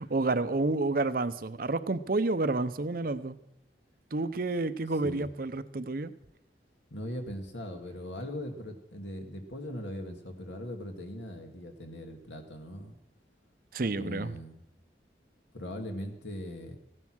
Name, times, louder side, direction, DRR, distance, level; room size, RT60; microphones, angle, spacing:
voice 1, 0.0-3.4 4.1-6.1 13.7-14.3, right 3 dB, 50° right, 13 dB, 0.7 m, -29 dB
voice 2, 6.9-13.0 13.9-14.6 15.5-16.7, left 1 dB, 80° left, 5 dB, 2.3 m, -40 dB
16.0 x 11.0 x 6.3 m, 0.79 s
head